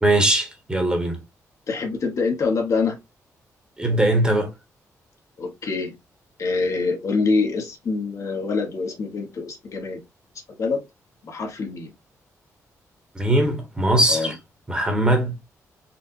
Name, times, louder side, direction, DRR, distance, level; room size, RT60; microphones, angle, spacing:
voice 1, 0.0-1.2 3.8-4.5 13.1-14.3 14.7-15.4, right 1 dB, 15° right, 1.2 m, -20 dB
voice 2, 1.7-3.0 5.4-5.9 6.4-10.0 10.6-10.8 11.2-11.9 14.1-14.3, left 4 dB, 60° left, 1.2 m, -25 dB
4.3 x 2.4 x 2.6 m
cardioid pair, 95°, 6 cm